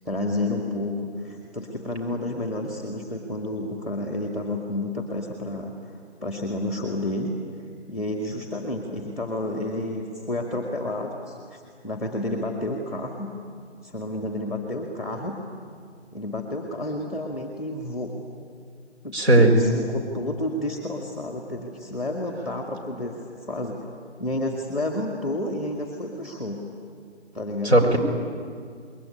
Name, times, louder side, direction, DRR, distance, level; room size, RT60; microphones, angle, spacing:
voice 1, 0.0-7.3 7.9-13.3 13.8-15.4 16.1-18.1 19.0-19.3 19.6-23.8 24.2-26.6 27.3-27.8, left 1 dB, ahead, 2 dB, 1.7 m, -30 dB
voice 2, 19.1-19.7 27.6-28.0, right 1 dB, 65° right, 3 dB, 6.0 m, -16 dB
27.0 x 21.5 x 9.8 m, 2.1 s
figure-of-eight pair, 155°, 35 cm